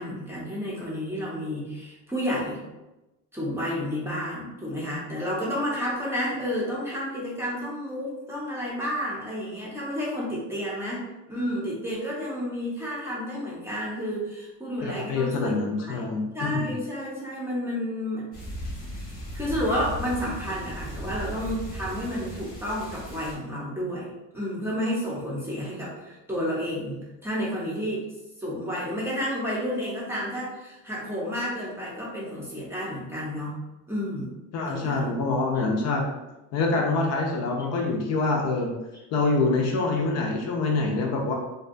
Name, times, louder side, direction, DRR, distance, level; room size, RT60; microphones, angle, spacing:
voice 1, 0.0-2.6 3.3-16.1 16.3-18.3 19.0-28.0 28.4-33.6 33.9-34.3 34.7-35.1, equal, 10° right, -6 dB, 0.6 m, -31 dB
voice 2, 14.8-16.7 34.5-36.1 36.5-38.7 39.1-41.3, left 3 dB, 55° left, 0 dB, 0.4 m, -25 dB
sound 1, 18.3-23.3, equal, 25° left, 0.8 m, -37 dB
2.5 x 2.2 x 2.5 m, 1.0 s
cardioid pair, 150°, 32 cm